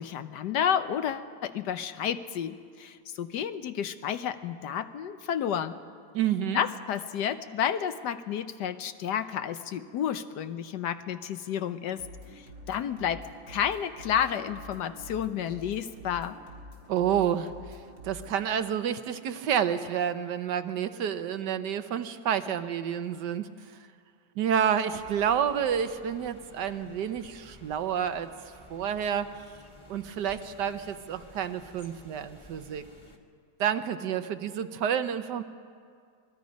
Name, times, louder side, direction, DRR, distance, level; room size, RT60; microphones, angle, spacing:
voice 1, 0.0-5.7 6.5-12.0 12.3-16.4, left 9 dB, 70° left, 11 dB, 1.2 m, -31 dB
voice 2, 6.1-6.6 16.9-23.5 24.4-28.3 28.7-29.3 29.9-32.8 33.6-35.4, right 8 dB, 70° right, 10 dB, 1.4 m, -29 dB
sound 1, 11.9-18.4, equal, 90° right, 3.9 m, -47 dB
sound 2, 24.9-33.2, left 1 dB, 25° left, 1.6 m, -53 dB
26.0 x 20.5 x 5.2 m, 2.2 s
omnidirectional pair, 2.0 m